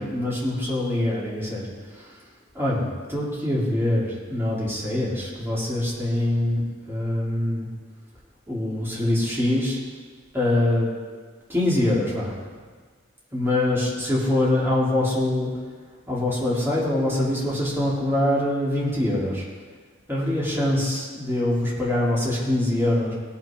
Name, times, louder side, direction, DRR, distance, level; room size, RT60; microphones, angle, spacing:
voice 1, 0.0-2.2 2.5-7.7 8.5-9.8 10.3-11.2 11.5-12.4 13.3-15.5 16.1-19.4 20.1-23.1, left 1 dB, 10° right, -7 dB, 3.0 m, -24 dB
18.0 x 6.0 x 5.1 m, 1.5 s
head